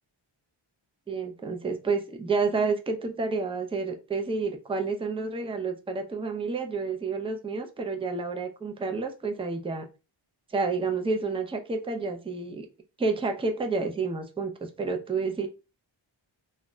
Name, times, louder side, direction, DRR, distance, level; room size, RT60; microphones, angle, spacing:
voice 1, 1.1-9.9 10.5-12.7 13.0-15.5, right 4 dB, 10° right, 5 dB, 0.4 m, -29 dB
2.2 x 2.1 x 3.6 m, 0.30 s
wide cardioid pair, 80°, 50 cm